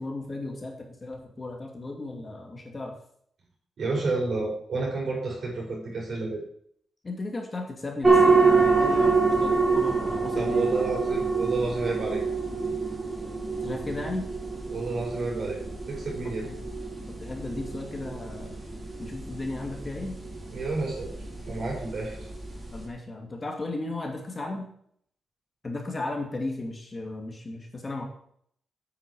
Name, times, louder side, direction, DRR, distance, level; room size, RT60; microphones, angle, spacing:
voice 1, 0.0-3.0 7.0-10.7 13.6-14.3 16.4-16.6 17.2-18.6 19.0-20.2 22.7-24.7 25.6-28.0, left 2 dB, 30° left, 2 dB, 2.2 m, -35 dB
voice 2, 3.8-6.4 10.3-12.2 12.6-12.7 14.7-15.6 15.9-16.5 20.5-21.1 21.4-22.2, right 3 dB, 60° right, -4 dB, 4.9 m, -30 dB
sound 1, 8.0-22.8, right 4 dB, 20° right, 2.8 m, -26 dB
9.0 x 6.5 x 6.2 m, 0.64 s
wide cardioid pair, 125°, 0 cm